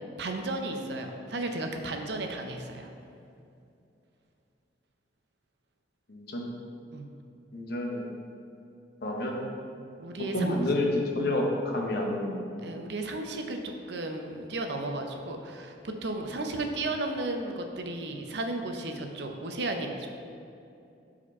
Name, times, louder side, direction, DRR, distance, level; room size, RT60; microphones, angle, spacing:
voice 1, 0.2-2.9 6.9-7.1 10.0-10.6 12.6-13.6 13.9-20.1, right 2 dB, 65° right, 4 dB, 0.6 m, -34 dB
voice 2, 6.1-6.5 7.5-8.1 9.0-9.5 10.3-12.5, left 1 dB, 60° left, 0 dB, 0.9 m, -29 dB
4.9 x 4.3 x 5.4 m, 2.6 s
head